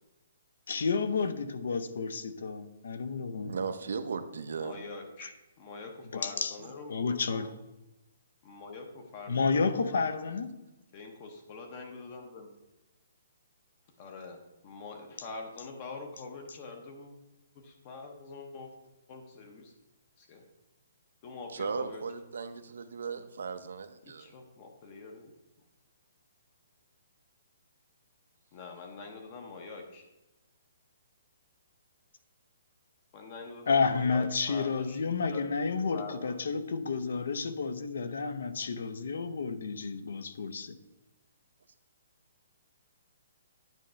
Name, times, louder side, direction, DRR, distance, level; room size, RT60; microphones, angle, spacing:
voice 1, 0.7-3.5 6.1-6.5 6.9-7.5 9.3-10.5 33.7-40.8, left 4 dB, 60° left, 11 dB, 0.6 m, -31 dB
voice 2, 3.4-4.8 21.5-24.3, right 5 dB, 70° right, 10 dB, 0.6 m, -36 dB
voice 3, 4.6-7.5 8.4-10.3 10.9-12.5 14.0-17.1 17.5-18.7 19.1-19.7 20.2-20.4 21.2-22.0 24.0-25.3 28.5-30.0 33.1-35.0 35.3-35.5 35.9-36.4, left 4 dB, 25° left, 3 dB, 0.6 m, -45 dB
9.1 x 3.1 x 5.6 m, 1.0 s
hypercardioid pair, 175°, 0 cm